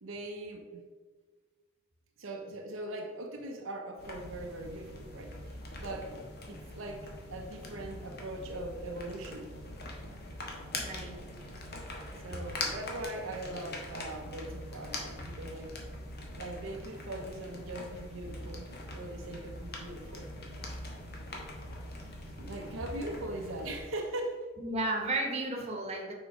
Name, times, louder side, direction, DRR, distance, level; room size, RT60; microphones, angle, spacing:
voice 1, 0.0-0.8 2.2-5.4 5.8-6.1 6.5-9.5 12.2-15.8 16.4-18.7 18.9-20.3 22.4-24.5, right 1 dB, 70° right, 2 dB, 0.7 m, -40 dB
sound 1, 4.0-23.8, left 1 dB, 50° left, 1.2 m, -43 dB
voice 2, 10.8-11.1 24.6-26.1, right 2 dB, 30° right, 1 dB, 1.1 m, -33 dB
6.2 x 3.9 x 4.9 m, 1.4 s
head